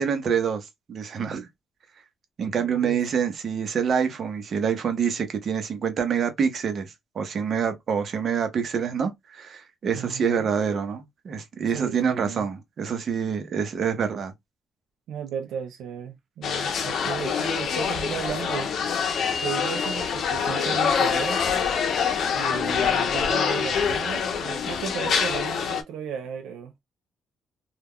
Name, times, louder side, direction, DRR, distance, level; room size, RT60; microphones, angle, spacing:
voice 1, 0.0-1.5 2.4-14.3, right 7 dB, 55° right, 0.7 m, -26 dB
voice 2, 2.6-3.0 10.0-10.5 11.7-12.5 15.1-21.4 22.3-26.7, right 8 dB, 85° right, 0.3 m, -35 dB
sound 1, 16.4-25.8, left 6 dB, 65° left, 0.6 m, -25 dB
2.3 x 2.1 x 3.5 m
cardioid pair, 90°, 0 cm